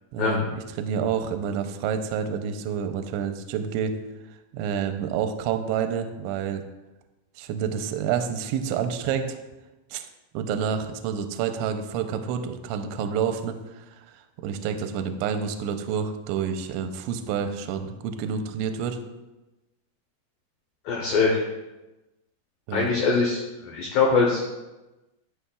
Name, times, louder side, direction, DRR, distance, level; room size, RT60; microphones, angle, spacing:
voice 1, 0.1-3.9 4.3-6.6 7.4-9.4 9.9-10.1 10.3-19.0 22.7-22.9, right 7 dB, 85° right, 7 dB, 2.8 m, -29 dB
voice 2, 20.9-21.4 22.7-24.4, left 4 dB, 80° left, -2 dB, 2.0 m, -22 dB
12.5 x 6.3 x 2.3 m, 1.0 s
omnidirectional pair, 5.5 m